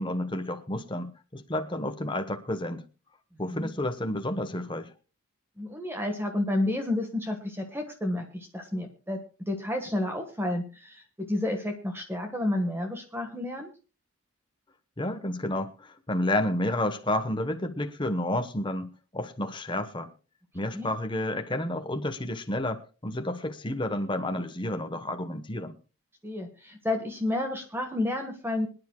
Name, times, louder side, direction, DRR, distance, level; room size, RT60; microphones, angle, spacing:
voice 1, 0.0-2.8 3.4-4.9 15.0-20.1 20.5-25.8, left 1 dB, 20° left, 1.0 m, -30 dB
voice 2, 5.6-9.2 9.5-13.7 20.7-20.9 26.2-28.7, left 1 dB, 10° right, 1.4 m, -30 dB
26.0 x 9.8 x 2.2 m
head